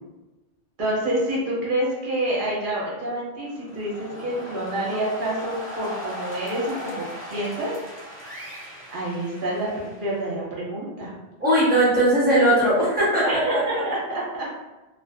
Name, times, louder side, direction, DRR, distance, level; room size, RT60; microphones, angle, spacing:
voice 1, 0.8-7.7 8.9-11.1 13.2-14.5, right 1 dB, 55° right, -5 dB, 0.9 m, -28 dB
sound 1, 3.4-10.3, equal, 15° left, 0.5 m, -38 dB
voice 2, 11.4-13.8, right 1 dB, 10° right, -10 dB, 1.0 m, -19 dB
2.4 x 2.4 x 2.3 m, 1.1 s
omnidirectional pair, 1.1 m